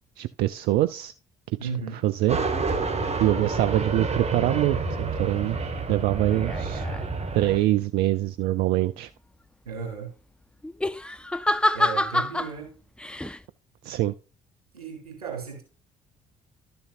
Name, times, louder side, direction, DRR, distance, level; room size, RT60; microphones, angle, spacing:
voice 1, 0.2-1.1 1.6-1.7 2.0-5.6 5.9-6.8 7.3-9.1 13.8-14.1, right 15 dB, 60° right, 0.4 m, -25 dB
voice 2, 1.6-2.0 9.6-10.1 11.7-12.7 14.7-15.6, right 6 dB, 85° right, 3.4 m, -34 dB
sound 1, 2.3-7.6, right 4 dB, 35° right, 1.7 m, -29 dB
sound 2, 6.3-7.1 10.6-12.5 13.0-13.4, left 1 dB, 5° left, 0.5 m, -27 dB
12.0 x 6.9 x 2.5 m
figure-of-eight pair, 50°, 18 cm